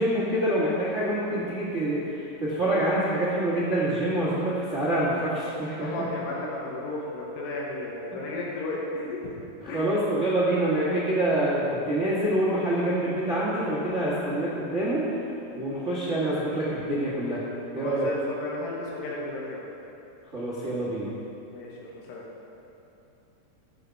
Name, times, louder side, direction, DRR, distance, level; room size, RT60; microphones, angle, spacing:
voice 1, 0.0-5.9 9.6-15.1 15.5-17.4 17.7-18.1 20.3-21.1, right 1 dB, 75° right, -7 dB, 0.6 m, -26 dB
voice 2, 5.8-9.2 9.7-9.9 17.8-19.6 21.5-22.2, left 2 dB, 80° left, -4 dB, 3.5 m, -34 dB
15.5 x 7.8 x 4.7 m, 2.9 s
omnidirectional pair, 4.8 m